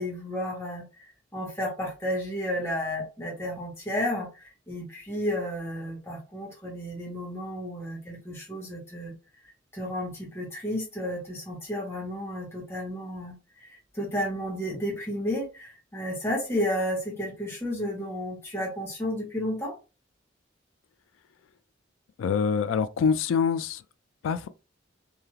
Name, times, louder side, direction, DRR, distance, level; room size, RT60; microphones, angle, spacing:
voice 1, 0.0-9.1 9.7-13.3 13.6-19.7, left 1 dB, 15° left, 1.3 m, -32 dB
voice 2, 22.2-23.8 24.2-24.5, left 6 dB, 90° left, 0.3 m, -25 dB
3.2 x 2.7 x 2.2 m
head